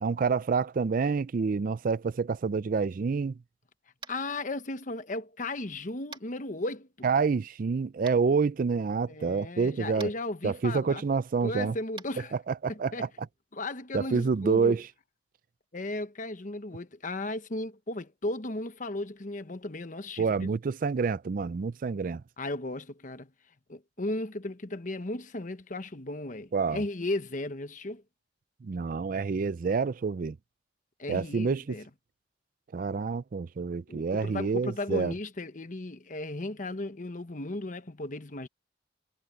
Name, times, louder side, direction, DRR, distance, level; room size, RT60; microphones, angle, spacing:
voice 1, 0.0-3.4 7.0-10.1 10.4-11.7 12.5-13.1 13.9-14.8 20.2-22.2 26.5-26.8 28.6-30.4 31.1-31.6 32.7-35.1, right 5 dB, 45° right, 0.4 m, -28 dB
Tap, 4.0-4.3 6.1-6.3 8.1-8.2 10.0-10.1 11.9-12.1, right 4 dB, 30° right, 2.6 m, -44 dB
voice 2, 4.1-7.1 9.1-11.0 11.4-12.3 12.7-13.1 13.5-14.8 15.7-20.5 22.4-23.3 23.7-28.0 31.0-31.8 33.9-38.5, left 2 dB, 45° left, 1.1 m, -35 dB
head